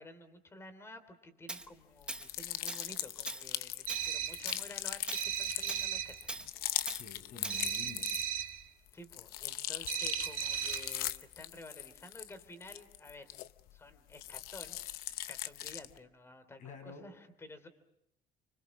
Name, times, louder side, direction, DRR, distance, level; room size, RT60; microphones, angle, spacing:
voice 1, 0.0-6.3 8.9-13.3 13.7-14.8 15.3-17.7, left 1 dB, 15° left, 10 dB, 3.3 m, -52 dB
Tools, 1.5-1.7 2.1-2.3 2.7-2.9 3.3-3.5 3.9-4.1 4.5-4.7 5.1-5.3 5.7-5.9 6.3-6.5 6.9-7.0 7.4-7.6, right 2 dB, 5° right, 1.1 m, -41 dB
sound 1, 2.0-8.5 8.9-13.8 14.1-16.0, left 14 dB, 80° left, 0.9 m, -40 dB
sound 2, 3.9-4.5 5.1-6.2 7.5-8.6 9.9-11.0, right 10 dB, 65° right, 2.1 m, -36 dB
voice 2, 6.9-8.2 16.6-17.1, left 4 dB, 55° left, 7 dB, 6.9 m, -49 dB
30.0 x 25.0 x 6.2 m, 0.77 s
cardioid pair, 145°, 15 cm